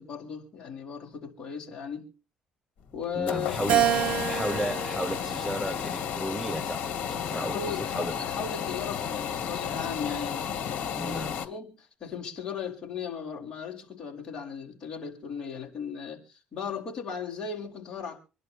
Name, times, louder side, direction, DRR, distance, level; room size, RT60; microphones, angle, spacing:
voice 1, 0.0-2.1 2.9-3.6 7.3-18.2, left 6 dB, 30° left, 5.0 m, -37 dB
sound 1, 2.9-11.5, left 8 dB, 65° left, 2.4 m, -32 dB
voice 2, 3.2-8.1 10.9-11.3, equal, 5° right, 0.6 m, -34 dB
Keyboard (musical), 3.7-6.2 6.8-8.0, right 11 dB, 60° right, 1.4 m, -30 dB
26.0 x 11.0 x 2.9 m
cardioid pair, 165°, 2 cm